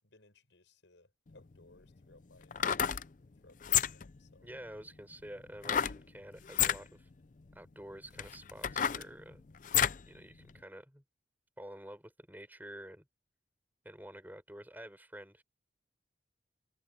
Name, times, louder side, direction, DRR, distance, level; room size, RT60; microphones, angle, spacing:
voice 1, 0.0-2.7 3.4-4.5, left 2 dB, 80° left, 5.7 m, -62 dB
sound 1, 1.3-1.4 2.4-3.1 3.6-4.2 5.6-6.0 6.5-6.8 7.5-7.6 8.2-10.1 10.5-10.6, left 9 dB, 45° left, 0.5 m, -30 dB
voice 2, 4.4-7.1 7.5-9.5 10.1-11.0 11.6-13.0 13.8-15.4, right 1 dB, 10° right, 6.7 m, -49 dB
head